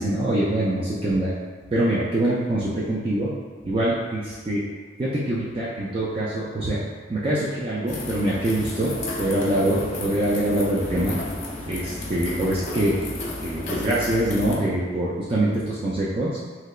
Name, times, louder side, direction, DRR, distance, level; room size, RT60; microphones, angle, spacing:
voice 1, 0.0-1.3 1.7-3.3 3.6-4.6 5.0-6.8 7.1-11.2 11.7-13.0 13.4-16.3, right 1 dB, 30° right, -7 dB, 0.3 m, -24 dB
sound 1, 7.9-14.6, left 2 dB, 40° left, 0.4 m, -32 dB
3.2 x 2.8 x 2.3 m, 1.5 s
head